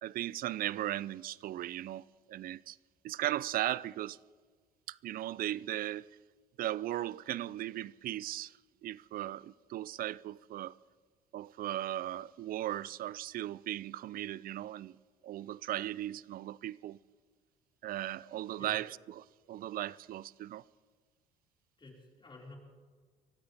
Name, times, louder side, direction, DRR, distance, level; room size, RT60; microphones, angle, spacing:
voice 1, 0.0-2.8 3.0-4.2 4.9-6.1 6.6-8.6 8.8-10.8 11.3-15.0 15.2-17.0 17.8-18.9 19.5-20.6, right 13 dB, 55° right, 0.4 m, -37 dB
voice 2, 21.8-22.6, left 2 dB, 25° left, 5.1 m, -51 dB
23.5 x 16.0 x 3.5 m
supercardioid pair, 70°, 18 cm